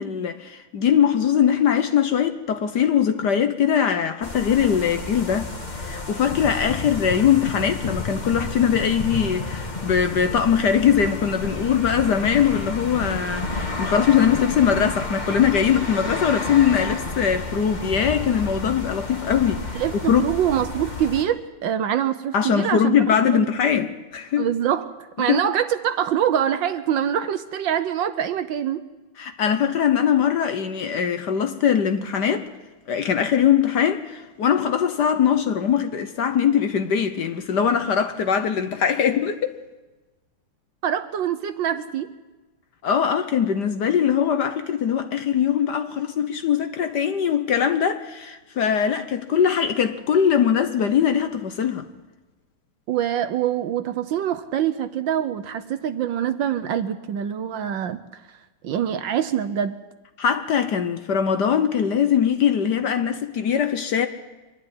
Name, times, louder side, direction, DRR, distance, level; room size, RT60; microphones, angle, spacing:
voice 1, 0.0-5.5 5.8-19.8 20.1-20.3 22.3-24.5 25.3-25.4 29.2-32.5 32.9-39.5 42.8-51.9 60.2-64.1, left 8 dB, 60° left, 1.4 m, -21 dB
sound 1, 4.2-21.2, left 3 dB, 25° left, 1.4 m, -31 dB
voice 2, 19.7-22.9 23.2-23.5 24.4-24.9 25.2-28.8 40.8-42.1 52.9-58.0 58.6-59.8, right 9 dB, 65° right, 1.4 m, -24 dB
24.5 x 12.0 x 9.7 m
omnidirectional pair, 2.4 m